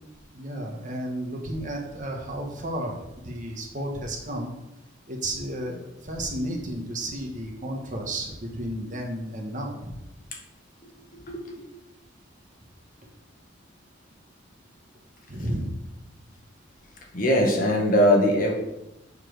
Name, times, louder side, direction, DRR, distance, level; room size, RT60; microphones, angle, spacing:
voice 1, 0.3-4.5 5.1-9.9 15.3-15.7, right 1 dB, 40° right, 1 dB, 1.5 m, -32 dB
voice 2, 10.8-11.7 17.1-18.5, equal, 45° left, 0 dB, 1.8 m, -22 dB
6.9 x 5.9 x 6.4 m, 0.90 s
head